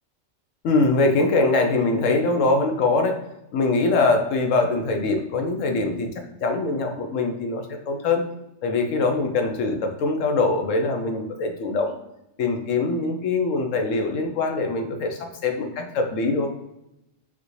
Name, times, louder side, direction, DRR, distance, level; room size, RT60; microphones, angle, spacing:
voice 1, 0.6-3.2 3.5-6.1 6.4-8.2 8.6-11.9 12.4-16.5, left 3 dB, 75° left, 4 dB, 1.0 m, -23 dB
5.6 x 2.5 x 3.1 m, 0.87 s
omnidirectional pair, 1.3 m